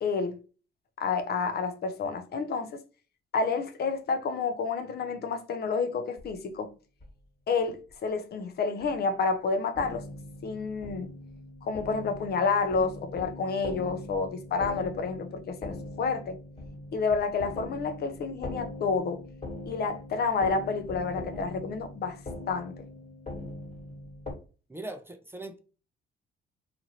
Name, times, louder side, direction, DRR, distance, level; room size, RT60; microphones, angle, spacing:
voice 1, 0.0-0.4 1.0-2.8 3.3-6.7 7.5-10.0 10.4-11.1 11.6-16.4 16.9-19.2 19.7-22.2 22.5-22.7, left 4 dB, 55° left, 0.5 m, -29 dB
sound 1, 6.2-6.3 7.0-7.1 7.9-8.0 8.8-8.9 9.8-24.3, left 2 dB, 35° left, 1.4 m, -41 dB
voice 2, 24.7-25.6, right 2 dB, 10° right, 0.5 m, -40 dB
2.7 x 2.5 x 2.8 m
cardioid pair, 90°, 20 cm